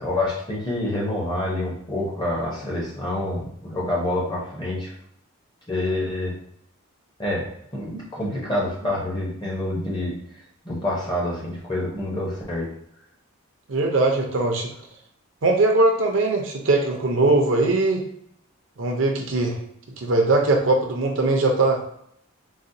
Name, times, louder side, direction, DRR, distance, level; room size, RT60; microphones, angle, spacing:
voice 1, 0.0-4.9 5.7-6.4 7.2-7.5 7.7-10.1 10.6-12.7, left 1 dB, 20° left, -4 dB, 0.8 m, -27 dB
voice 2, 13.7-14.7 15.4-18.1 18.8-19.6 20.0-21.8, right 2 dB, 60° right, 2 dB, 0.6 m, -20 dB
4.0 x 2.2 x 2.6 m, 0.70 s
head